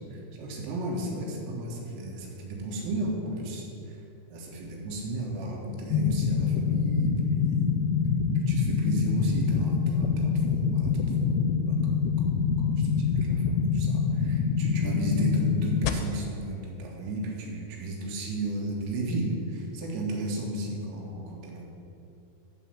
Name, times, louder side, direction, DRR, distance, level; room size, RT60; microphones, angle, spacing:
voice 1, 0.0-4.0 4.3-7.8 8.4-21.6, right 2 dB, 75° right, -2 dB, 3.8 m, -34 dB
sound 1, 5.9-15.9, left 6 dB, 85° left, 3.1 m, -25 dB
10.5 x 4.2 x 7.5 m, 2.9 s
omnidirectional pair, 6.0 m